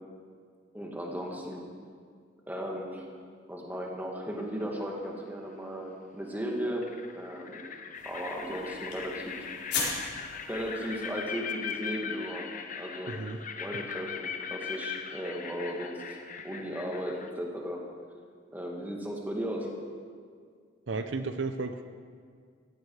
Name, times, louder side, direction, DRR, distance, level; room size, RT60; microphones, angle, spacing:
voice 1, 0.7-1.6 2.5-3.1 3.5-6.9 7.2-7.7 8.0-9.4 9.7-9.9 10.5-12.5 12.7-13.2 13.6-16.2 16.4-17.8 18.5-19.7, equal, 10° right, -1 dB, 2.1 m, -36 dB
sound 1, 4.4-4.8 6.3-6.4 6.8-17.3, left 7 dB, 40° left, 0.9 m, -40 dB
sound 2, 7.9-11.5, left 4 dB, 55° left, 4.3 m, -38 dB
voice 2, 13.1-13.4 20.9-21.8, right 3 dB, 70° right, 8 dB, 0.7 m, -33 dB
16.0 x 15.5 x 4.9 m, 2.1 s
head